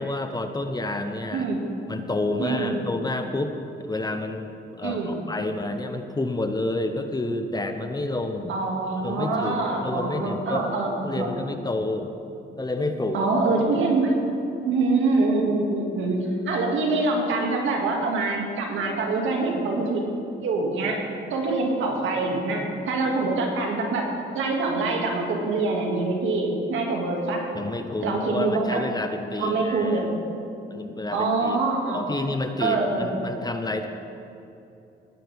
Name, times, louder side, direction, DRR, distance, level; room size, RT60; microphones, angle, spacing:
voice 1, 0.0-1.5 1.9-3.5 3.8-8.5 9.0-10.7 11.0-12.1 12.6-13.6 27.5-30.1 30.7-31.6 31.9-33.9, left 2 dB, 20° left, 6 dB, 1.0 m, -29 dB
voice 2, 1.3-1.7 2.4-2.8 4.8-5.2 8.5-11.3 13.1-14.3 14.6-20.0 20.4-27.5 28.0-28.8 29.4-30.1 31.1-32.0 32.6-33.2, right 3 dB, 80° right, 0 dB, 2.3 m, -25 dB
19.0 x 10.0 x 3.6 m, 2.7 s
cardioid pair, 90°, 20 cm